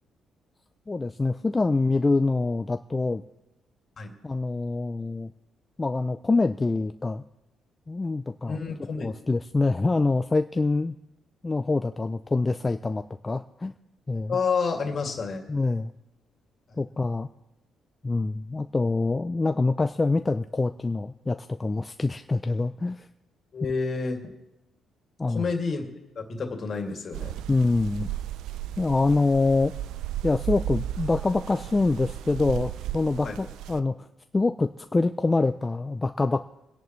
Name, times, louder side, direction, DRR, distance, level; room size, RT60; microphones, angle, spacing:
voice 1, 0.9-3.2 4.2-5.3 5.8-7.2 7.9-8.6 9.0-10.9 11.4-13.7 14.1-14.4 15.5-15.9 16.8-17.3 18.0-23.1 25.2-25.5 27.5-28.1 28.8-29.7 30.2-34.1 34.3-36.4, left 3 dB, 20° left, 9 dB, 0.4 m, -25 dB
voice 2, 8.5-9.1 14.3-15.4 23.5-24.2 25.3-25.8 26.3-27.4 33.2-33.4, left 5 dB, 50° left, 3 dB, 2.4 m, -29 dB
sound 1, 27.1-33.8, right 11 dB, 85° right, 0.4 m, -34 dB
29.5 x 10.5 x 3.2 m, 0.97 s
cardioid pair, 90°, 0 cm